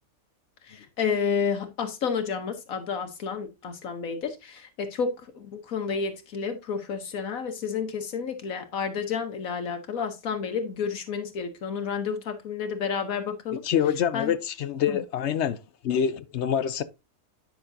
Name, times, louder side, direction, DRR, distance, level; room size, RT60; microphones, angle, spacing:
voice 1, 0.6-13.6 14.1-14.3 14.9-15.0, left 6 dB, 80° left, 1.4 m, -30 dB
voice 2, 13.6-15.6 15.8-16.8, left 8 dB, 60° left, 0.9 m, -26 dB
10.0 x 5.8 x 2.6 m
omnidirectional pair, 1.4 m